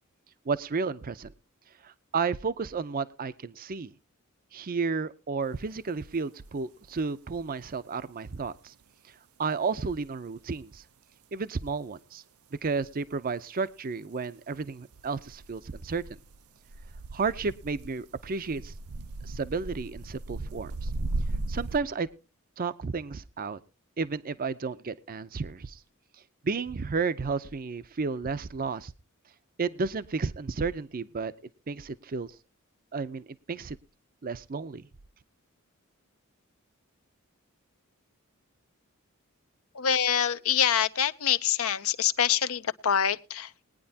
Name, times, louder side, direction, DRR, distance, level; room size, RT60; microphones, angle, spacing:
voice 1, 0.5-1.3 1.8-3.9 4.5-8.7 9.4-10.8 11.3-12.2 12.6-16.0 17.1-18.8 19.2-20.9 21.5-22.1 22.6-23.6 24.0-25.8 26.4-28.9 29.6-31.3 31.7-32.3 32.9-33.8 34.2-34.9, right 4 dB, 40° right, 0.5 m, -32 dB
sound 1, 5.7-5.8 8.5-8.6 14.9-21.8, right 2 dB, 90° right, 0.6 m, -36 dB
voice 2, 39.7-43.5, left 8 dB, 75° left, 0.7 m, -25 dB
21.0 x 9.6 x 2.7 m
head